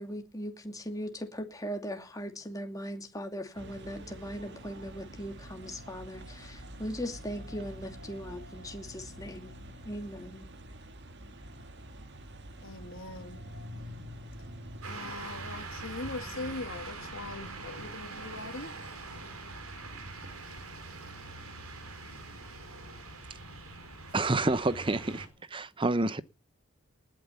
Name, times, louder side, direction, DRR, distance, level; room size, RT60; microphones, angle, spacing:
voice 1, 0.0-9.5 9.8-10.5, equal, 15° left, 2.5 m, -39 dB
sound 1, 3.5-14.9, equal, 50° right, 1.9 m, -46 dB
voice 2, 12.6-13.4 14.9-18.7, left 3 dB, 60° left, 1.9 m, -41 dB
sound 2, 14.8-25.3, right 3 dB, 75° right, 4.0 m, -43 dB
voice 3, 24.1-25.3 25.5-26.2, right 2 dB, 20° right, 0.8 m, -28 dB
19.5 x 9.1 x 7.0 m
head